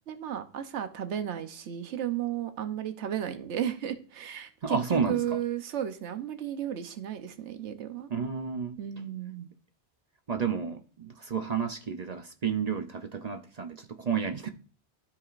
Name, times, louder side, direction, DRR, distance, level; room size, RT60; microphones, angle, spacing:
voice 1, 0.1-8.1 8.8-9.5, right 10 dB, 85° right, 1.1 m, -34 dB
voice 2, 4.6-5.2 8.1-8.8 10.3-14.5, right 6 dB, 45° right, 0.6 m, -31 dB
13.0 x 4.9 x 2.4 m
omnidirectional pair, 1.1 m